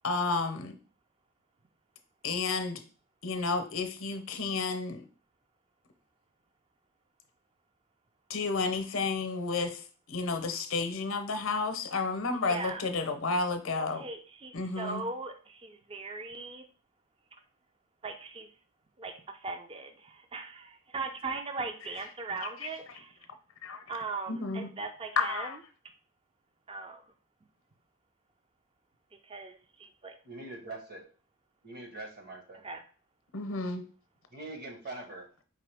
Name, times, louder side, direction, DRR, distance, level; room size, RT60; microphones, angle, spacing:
voice 1, 0.0-0.8 2.2-2.8 3.2-5.0 8.3-9.8 10.1-14.0 14.5-15.0 23.6-23.8 24.3-24.7 25.2-25.6 33.3-33.9, left 4 dB, 65° left, 8 dB, 0.7 m, -31 dB
voice 2, 12.3-12.9 13.8-16.6 18.0-18.5 19.0-23.2 23.9-25.6 26.7-27.0 29.2-30.1 32.6-32.8, right 3 dB, 25° right, 6 dB, 0.4 m, -39 dB
voice 3, 30.2-31.0 31.6-32.6 34.3-35.3, right 2 dB, 50° right, 3 dB, 1.3 m, -43 dB
4.9 x 3.1 x 3.4 m, 0.37 s
head